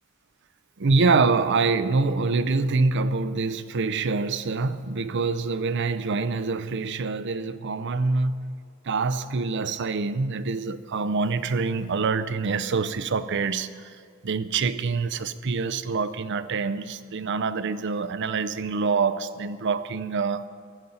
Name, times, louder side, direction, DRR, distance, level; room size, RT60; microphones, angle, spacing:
voice 1, 0.8-8.6 8.8-20.5, right 4 dB, 60° right, 0.5 m, -25 dB
15.0 x 10.5 x 5.5 m
head